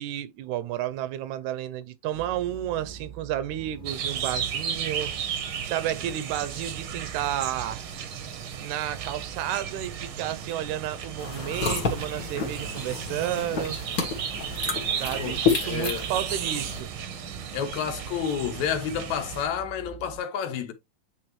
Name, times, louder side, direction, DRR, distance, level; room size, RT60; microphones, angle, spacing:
voice 1, 0.0-5.1 5.6-7.9 8.6-13.8 15.0-16.9, right 12 dB, 80° right, 2.0 m, -31 dB
sound 1, 2.1-20.2, right 6 dB, 15° left, 1.6 m, -46 dB
sound 2, 3.8-19.5, right 8 dB, 65° right, 1.4 m, -34 dB
sound 3, 11.2-16.8, left 5 dB, 45° left, 1.3 m, -30 dB
voice 2, 15.2-16.1 17.5-20.7, left 8 dB, 75° left, 2.2 m, -30 dB
8.9 x 3.8 x 3.1 m
omnidirectional pair, 3.4 m